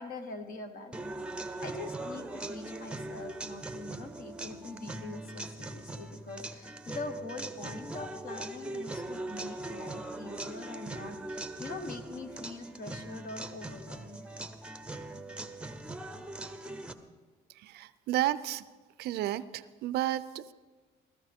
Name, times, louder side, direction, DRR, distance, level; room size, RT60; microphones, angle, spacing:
voice 1, 0.0-14.2, left 3 dB, 55° left, 6 dB, 1.4 m, -43 dB
sound 1, 0.9-16.9, right 2 dB, 5° right, 0.7 m, -41 dB
voice 2, 17.6-18.6 19.0-20.5, right 14 dB, 75° right, 16 dB, 0.5 m, -32 dB
16.5 x 13.5 x 3.6 m, 1.4 s
cardioid pair, 110°, 17 cm